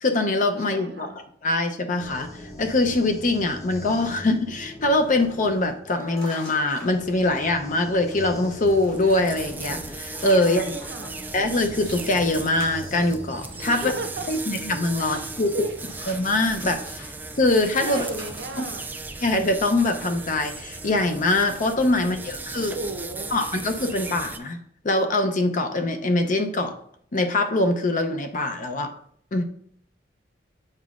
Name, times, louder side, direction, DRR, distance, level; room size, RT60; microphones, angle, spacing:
voice 1, 0.0-1.1 1.4-2.3 2.6-10.7 11.3-13.9 14.3-15.5 16.1-17.1 17.4-18.1 19.2-22.8 23.3-24.6 24.8-26.8 27.1-28.9 29.3-29.4, left 2 dB, 45° left, 6 dB, 0.6 m, -23 dB
voice 2, 0.6-1.2 10.4-11.2 13.7-14.3 15.0-15.8 17.8-18.9 21.9-23.3, right 2 dB, 60° right, 5 dB, 0.8 m, -35 dB
sound 1, 2.0-14.3, left 1 dB, 20° left, 0.8 m, -41 dB
sound 2, 4.9-11.0 11.3-18.8, left 1 dB, 75° left, 2.7 m, -48 dB
sound 3, 8.6-24.4, right 3 dB, 10° right, 0.3 m, -37 dB
7.6 x 5.0 x 2.4 m, 0.63 s
head